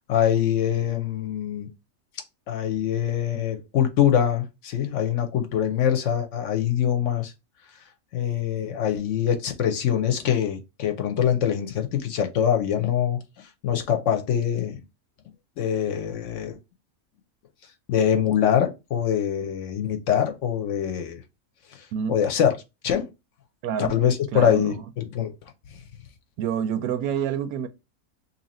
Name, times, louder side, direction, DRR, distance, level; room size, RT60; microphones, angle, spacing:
voice 1, 0.1-1.7 2.5-7.3 8.1-14.8 15.6-16.6 17.9-21.2 21.7-22.5 22.8-23.1 23.9-25.3, left 9 dB, 65° left, 0.9 m, -24 dB
voice 2, 23.6-23.9 24.3-24.8 26.4-27.7, right 8 dB, 90° right, 1.1 m, -27 dB
2.8 x 2.8 x 4.1 m
omnidirectional pair, 1.5 m